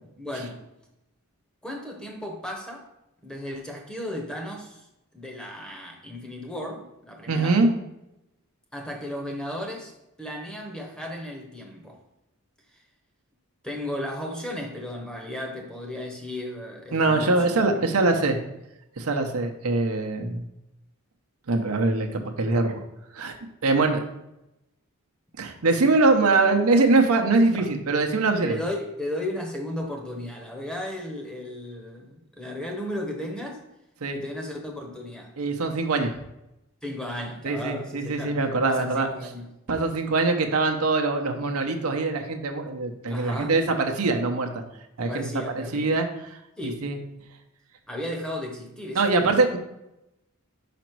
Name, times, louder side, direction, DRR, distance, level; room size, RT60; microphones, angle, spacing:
voice 1, 0.2-0.7 1.6-2.9 3.2-4.9 5.1-7.6 8.7-9.9 10.2-12.0 13.6-17.9 27.6-27.7 28.4-33.6 34.1-35.4 36.8-39.5 43.1-43.5 45.1-46.0 46.6-46.9 47.9-49.4, left 1 dB, 5° left, 1 dB, 0.8 m, -35 dB
voice 2, 7.3-7.7 16.9-18.4 19.0-20.4 21.5-22.8 23.1-23.3 23.6-24.0 25.4-28.6 34.0-34.2 35.4-36.1 37.4-39.1 39.7-44.5 45.0-45.3 45.5-47.0 48.9-49.6, right 3 dB, 80° right, 4 dB, 0.8 m, -23 dB
5.1 x 5.1 x 4.6 m, 0.89 s
head